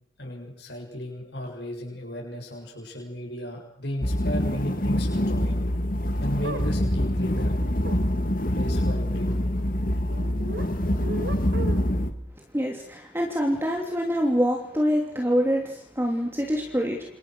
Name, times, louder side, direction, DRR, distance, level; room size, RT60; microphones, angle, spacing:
voice 1, 0.2-5.6 6.2-7.5 8.5-9.4, equal, 65° left, 1 dB, 7.3 m, -34 dB
sound 1, 4.0-12.1, left 1 dB, 50° left, 2.4 m, -25 dB
sound 2, 6.4-6.7 7.8-8.0 10.1-10.7 11.0-12.0, right 2 dB, 75° right, 3.7 m, -35 dB
voice 2, 12.5-17.0, equal, 15° right, 1 dB, 3.1 m, -25 dB
29.5 x 28.5 x 6.4 m, 0.71 s
head